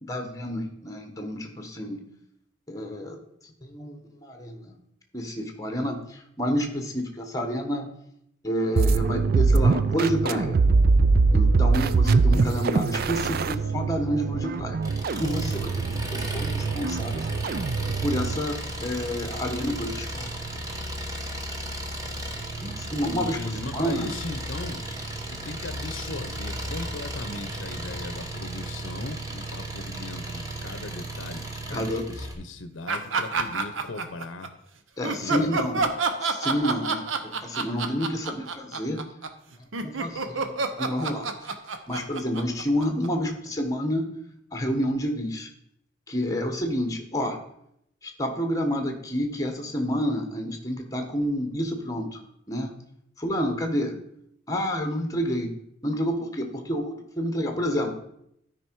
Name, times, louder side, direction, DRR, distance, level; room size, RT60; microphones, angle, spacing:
voice 1, 0.0-2.0 2.7-3.2 3.4-4.8 5.1-7.9 8.4-10.6 11.3-17.3 18.0-20.3 22.6-23.4 23.7-24.1 31.7-32.1 35.0-35.8 36.2-39.0 39.8-41.5 41.9-44.1 44.5-45.5 46.1-47.4 48.0-52.2 52.5-52.7 53.2-54.0 54.5-55.5 55.8-57.9, equal, 20° left, 4 dB, 1.3 m, -29 dB
sound 1, 8.8-18.5, right 4 dB, 50° right, 0.4 m, -23 dB
Engine, 14.8-32.3, right 1 dB, 20° right, 1.2 m, -35 dB
voice 2, 23.2-24.8 25.3-34.5 35.2-36.0, left 2 dB, 85° left, 10 dB, 0.7 m, -38 dB
sound 2, 32.9-34.5 35.0-43.3, right 4 dB, 85° right, 0.9 m, -28 dB
12.5 x 5.2 x 4.6 m, 0.75 s
head